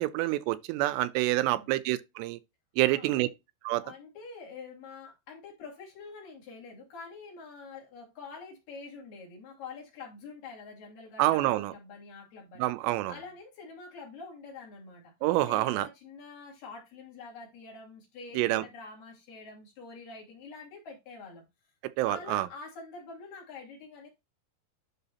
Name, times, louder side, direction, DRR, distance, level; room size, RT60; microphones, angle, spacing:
voice 1, 0.0-2.4 2.8-3.3 3.6-3.8 11.2-11.7 12.6-13.1 15.2-15.9 18.3-18.7 22.0-22.5, right 17 dB, 85° right, 2.7 m, -27 dB
voice 2, 2.8-3.3 3.8-12.7 13.1-15.1 15.5-21.5 22.0-24.1, left 4 dB, 55° left, 3.6 m, -46 dB
11.0 x 3.7 x 2.8 m
omnidirectional pair, 5.0 m